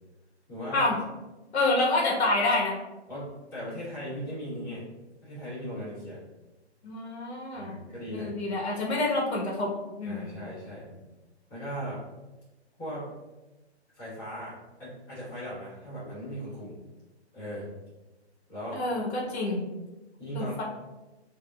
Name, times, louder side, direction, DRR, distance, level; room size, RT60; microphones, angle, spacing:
voice 1, 0.5-0.9 3.1-4.8 5.2-6.2 7.5-8.3 10.0-11.1 11.5-12.0 12.8-13.0 13.9-16.8 17.3-17.7 18.5-18.8 20.2-20.6, equal, 10° left, -13 dB, 1.4 m, -38 dB
voice 2, 1.5-2.7 6.8-7.8 8.1-9.7 10.0-10.3 18.7-19.6 20.3-20.6, left 2 dB, 70° left, -3 dB, 1.2 m, -27 dB
5.0 x 2.9 x 2.3 m, 1.1 s
hypercardioid pair, 170°, 34 cm